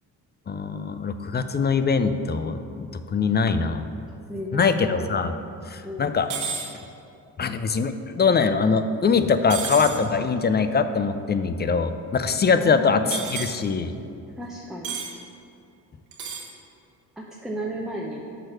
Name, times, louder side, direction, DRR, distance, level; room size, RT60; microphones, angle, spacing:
voice 1, 0.5-3.8 4.5-5.3 5.7-6.3 7.4-13.9, left 5 dB, 25° left, 10 dB, 0.4 m, -23 dB
voice 2, 4.3-5.1 5.8-6.1 12.6-13.2 14.4-14.9 17.2-18.2, equal, ahead, -2 dB, 0.8 m, -34 dB
sound 1, 6.3-6.7 9.5-10.0 13.1-13.6 14.8-15.1 16.1-16.5, right 6 dB, 75° right, 1.3 m, -31 dB
5.9 x 4.6 x 6.4 m, 2.6 s
hypercardioid pair, 55°, 43 cm